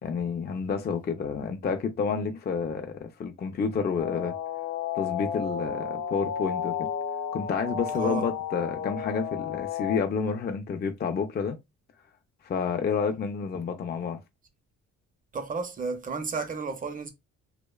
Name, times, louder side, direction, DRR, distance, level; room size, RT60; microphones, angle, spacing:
voice 1, 0.0-4.3 5.0-6.9 7.3-11.6 12.4-14.2, left 5 dB, 35° left, 0.5 m, -29 dB
sound 1, 4.0-10.0, left 7 dB, 65° left, 0.8 m, -32 dB
voice 2, 8.0-8.3 15.3-17.1, right 4 dB, 30° right, 0.6 m, -32 dB
2.6 x 2.1 x 2.3 m
cardioid pair, 90°, 30 cm